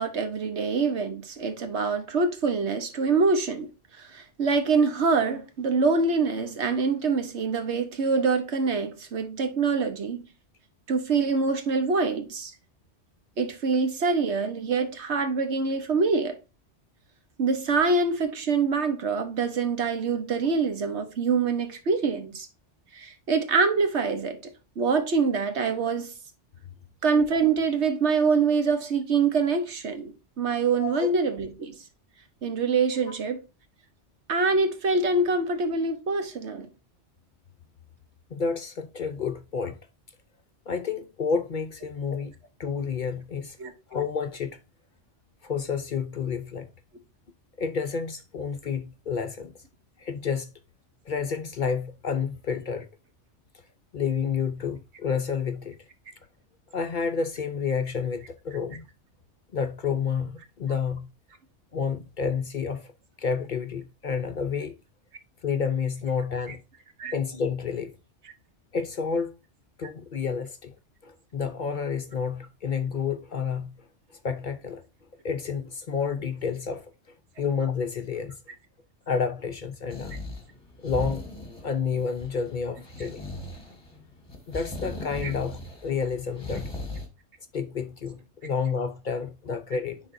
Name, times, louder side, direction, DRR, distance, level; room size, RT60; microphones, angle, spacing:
voice 1, 0.0-3.7 4.0-10.3 10.9-12.5 13.4-16.4 17.4-22.5 22.9-24.5 24.8-26.1 27.0-31.8 32.4-33.4 34.3-36.7 43.6-43.7 67.0-67.1 85.2-85.3, right 4 dB, 75° right, 1.4 m, -25 dB
voice 2, 38.3-39.8 40.7-42.3 42.6-43.6 43.9-44.6 45.4-46.7 47.6-49.5 50.0-50.5 51.1-52.9 53.9-55.8 56.7-58.9 59.5-61.1 61.7-62.9 63.2-64.8 65.4-66.6 67.1-67.9 68.7-69.3 69.8-70.7 71.0-73.8 74.2-74.8 75.2-76.9 77.4-78.4 79.1-80.2 80.8-81.3 81.6-83.3 84.5-86.7 87.5-90.0, left 6 dB, 50° left, 0.7 m, -30 dB
sound 1, 79.9-87.1, left 2 dB, 20° left, 1.7 m, -38 dB
9.9 x 3.9 x 2.6 m
omnidirectional pair, 1.2 m